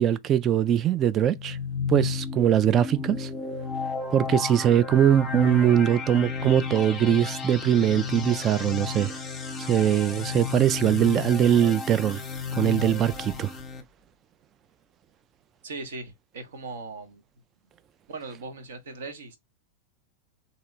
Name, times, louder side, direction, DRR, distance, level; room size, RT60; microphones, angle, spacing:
voice 1, 0.0-1.6 1.9-3.3 4.1-9.1 9.6-12.2 12.6-13.5, right 10 dB, 30° right, 0.3 m, -22 dB
sound 1, 1.3-13.8, left 5 dB, 15° left, 0.9 m, -33 dB
voice 2, 15.6-17.2 18.1-19.4, right 3 dB, 60° right, 0.9 m, -39 dB
3.8 x 2.9 x 3.1 m
figure-of-eight pair, 90°, 0 cm